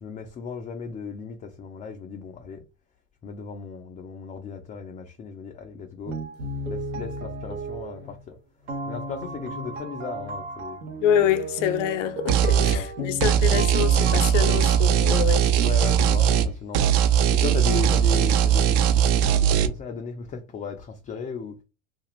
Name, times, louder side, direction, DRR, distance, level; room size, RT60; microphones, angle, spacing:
voice 1, 0.0-2.6 3.2-6.2 6.7-8.4 8.9-10.8 12.5-12.9 13.2-13.4 15.6-21.6, left 5 dB, 20° left, 0.3 m, -36 dB
sound 1, 6.1-8.3 8.6-14.8, right 1 dB, 90° right, 1.0 m, -34 dB
voice 2, 11.0-15.5, left 10 dB, 75° left, 0.6 m, -26 dB
sound 2, 12.3-12.8 13.2-16.5 16.7-19.7, right 9 dB, 55° right, 0.5 m, -20 dB
2.5 x 2.4 x 2.9 m
hypercardioid pair, 95°, 38 cm